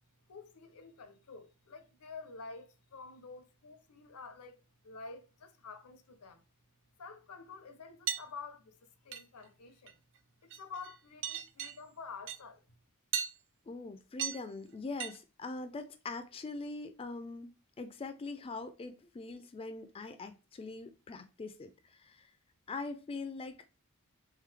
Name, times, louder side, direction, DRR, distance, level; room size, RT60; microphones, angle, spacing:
voice 1, 0.3-6.4 7.0-8.8 9.0-9.9 10.4-12.8, left 4 dB, 80° left, 0.6 m, -49 dB
sound 1, 8.1-8.2 9.1-9.4 9.9-10.2 10.5-11.0 11.2-11.8 12.3-12.4 13.1-13.3 14.2-14.4 15.0-15.2, right 9 dB, 55° right, 0.5 m, -36 dB
voice 2, 13.7-17.5 17.8-22.3 22.7-23.7, left 3 dB, 25° left, 0.3 m, -42 dB
3.7 x 3.4 x 3.2 m
head